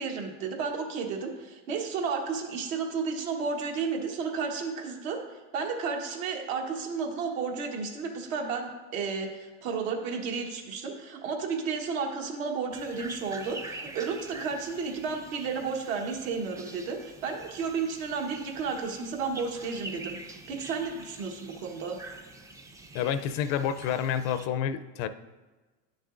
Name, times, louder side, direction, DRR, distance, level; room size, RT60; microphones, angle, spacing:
voice 1, 0.0-5.2 5.5-22.0, right 5 dB, 80° right, 2 dB, 1.3 m, -32 dB
sound 1, 12.7-24.5, right 2 dB, 10° right, 0.3 m, -46 dB
voice 2, 22.9-25.1, left 9 dB, 55° left, 12 dB, 0.5 m, -29 dB
10.0 x 6.3 x 2.5 m, 1.2 s
supercardioid pair, 110°, 39 cm